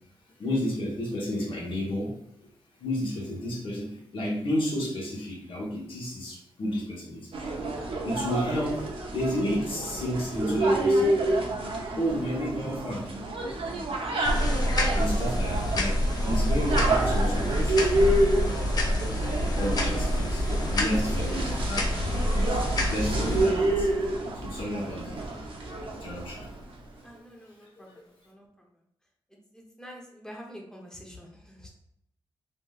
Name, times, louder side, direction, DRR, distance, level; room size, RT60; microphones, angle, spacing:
voice 1, 0.4-2.5 2.8-7.3 8.0-8.8 9.1-11.1 12.0-13.1 14.9-18.2 19.6-21.8 22.9-23.9 24.3-25.2 26.0-26.5, equal, 65° left, -3 dB, 1.0 m, -31 dB
sound 1, 7.3-26.6, right 1 dB, 65° right, 0.6 m, -29 dB
sound 2, 14.2-23.5, left 1 dB, 45° left, 0.6 m, -27 dB
voice 2, 27.0-28.5 28.7-28.8 29.3-31.7, equal, 5° left, 0 dB, 0.7 m, -47 dB
3.5 x 2.6 x 2.3 m, 0.76 s
cardioid pair, 95°, 10 cm